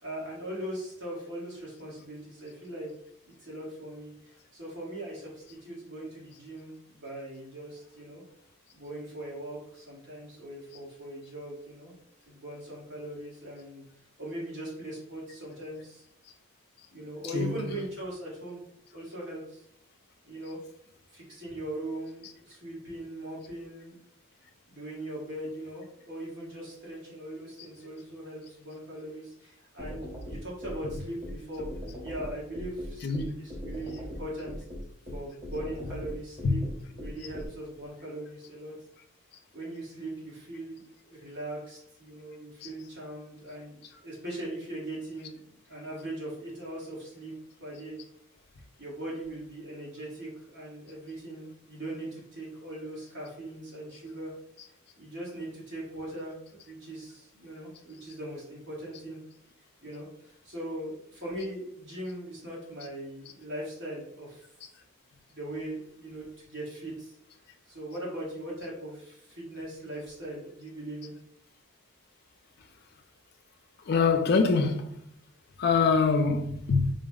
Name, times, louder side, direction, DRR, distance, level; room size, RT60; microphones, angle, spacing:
voice 1, 0.0-2.9 3.2-8.2 8.7-11.9 12.2-13.8 14.2-16.0 16.9-18.6 18.9-19.6 20.2-20.6 21.1-24.0 24.7-31.7 32.0-34.5 35.1-36.6 36.9-38.8 39.5-40.8 41.1-45.4 45.7-47.3 47.6-48.0 48.8-54.4 55.0-59.2 59.8-64.4 65.3-67.1 67.7-71.1, right 1 dB, 55° right, 1.4 m, -40 dB
sound 1, 29.8-37.5, equal, 25° right, 0.8 m, -39 dB
voice 2, 33.0-33.4 36.4-36.5 73.9-75.0 75.6-76.9, left 4 dB, 50° left, 0.4 m, -24 dB
3.8 x 2.0 x 3.5 m
head